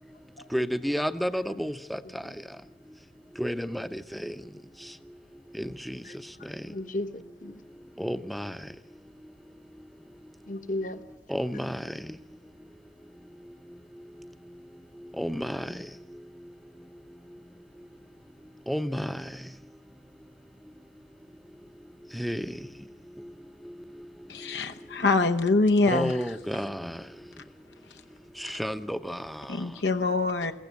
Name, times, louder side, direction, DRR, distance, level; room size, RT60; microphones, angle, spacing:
voice 1, 0.5-2.0 3.4-4.3 5.6-6.0 8.0-8.5 11.3-11.9 15.2-15.7 18.7-19.3 22.1-22.5 25.9-27.0 28.4-29.4, equal, ahead, 11 dB, 0.7 m, -31 dB
voice 2, 6.7-7.6 10.5-11.0, left 1 dB, 45° left, 11 dB, 1.2 m, -35 dB
voice 3, 24.3-26.1 29.5-30.5, left 3 dB, 80° left, 6 dB, 1.0 m, -24 dB
22.0 x 16.0 x 9.3 m, 0.96 s
head